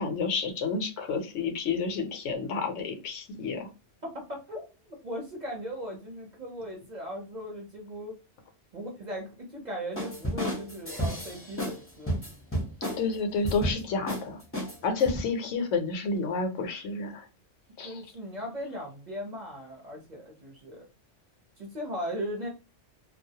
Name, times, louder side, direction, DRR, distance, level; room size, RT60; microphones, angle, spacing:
voice 1, 0.0-3.7 13.0-14.4 14.8-17.3 17.8-18.0, left 4 dB, 75° left, 6 dB, 0.9 m, -30 dB
voice 2, 4.0-8.1 8.7-12.2 17.8-20.9 21.6-22.5, equal, 45° right, -1 dB, 0.6 m, -38 dB
sound 1, 10.0-11.8 12.1-13.0 13.4-13.8 14.1-14.2 14.5-15.2, equal, 15° left, 0.5 m, -31 dB
2.3 x 2.0 x 2.6 m, 0.30 s
omnidirectional pair, 1.3 m